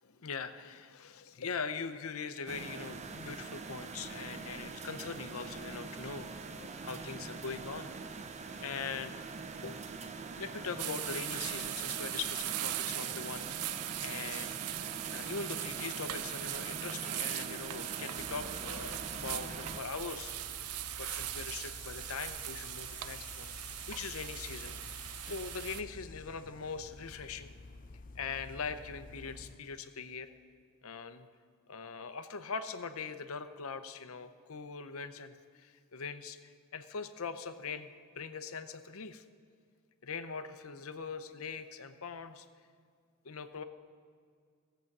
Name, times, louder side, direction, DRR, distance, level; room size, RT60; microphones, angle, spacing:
voice 1, 0.0-7.9 8.6-9.2 9.6-13.7 14.0-14.8 15.1-20.3 21.0-24.7 25.2-27.5 28.2-30.3 30.8-31.3 31.7-39.2 40.0-42.5 43.2-43.6, left 5 dB, 75° left, 10 dB, 0.7 m, -42 dB
sound 1, 2.5-19.8, right 4 dB, 30° right, 0.5 m, -44 dB
sound 2, 10.8-25.8, right 13 dB, 90° right, 0.5 m, -40 dB
sound 3, 18.2-29.6, left 3 dB, 35° left, 0.5 m, -50 dB
16.5 x 7.9 x 6.0 m, 2.1 s
head